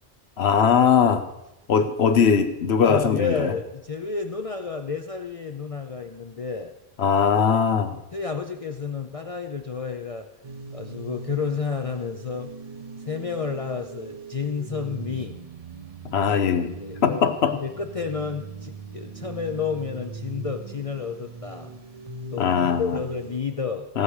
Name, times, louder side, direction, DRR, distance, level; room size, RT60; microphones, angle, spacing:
voice 1, 0.4-1.2 1.7-3.5 7.0-7.9 16.1-16.7 17.0-17.5 22.4-23.0 23.9-24.0, left 7 dB, 80° left, 10 dB, 1.2 m, -20 dB
voice 2, 2.8-6.7 7.9-10.3 10.7-12.5 13.0-15.4 16.8-21.7 22.3-23.9, left 5 dB, 40° left, 5 dB, 0.6 m, -31 dB
sound 1, 10.4-23.4, right 4 dB, 40° right, 0.8 m, -40 dB
17.5 x 6.6 x 4.9 m, 0.94 s
omnidirectional pair, 1.1 m